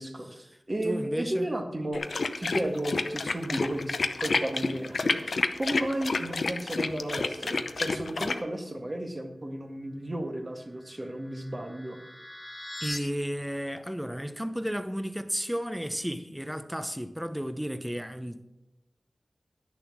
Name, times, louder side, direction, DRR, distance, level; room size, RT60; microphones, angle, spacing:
voice 1, 0.0-2.1 2.4-4.0 4.2-12.0, right 1 dB, 35° right, 1.7 m, -33 dB
voice 2, 0.8-1.5 12.8-18.5, equal, 5° right, 0.8 m, -33 dB
sound 1, 1.9-8.4, left 3 dB, 75° left, 0.6 m, -29 dB
sound 2, 10.7-13.0, left 1 dB, 15° left, 1.8 m, -42 dB
10.5 x 6.8 x 6.2 m
cardioid pair, 55°, 0 cm